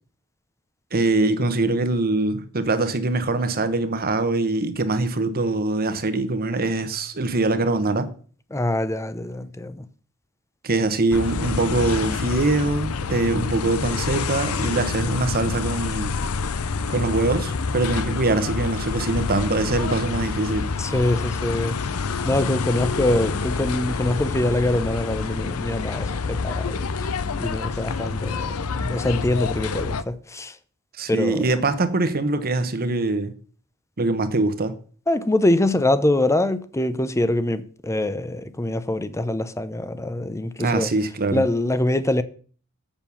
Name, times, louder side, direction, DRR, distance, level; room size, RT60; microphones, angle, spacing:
voice 1, 0.9-8.1 10.6-16.2 16.9-20.7 31.0-33.3 34.0-34.7 40.6-41.4, right 2 dB, 45° right, 1.1 m, -23 dB
voice 2, 8.5-9.8 20.8-21.8 22.2-26.9 27.4-30.6 31.1-31.4 35.1-40.9 41.3-42.2, left 1 dB, 15° left, 0.7 m, -24 dB
sound 1, 11.1-30.0, left 4 dB, 80° left, 0.7 m, -27 dB
7.6 x 7.2 x 7.0 m
head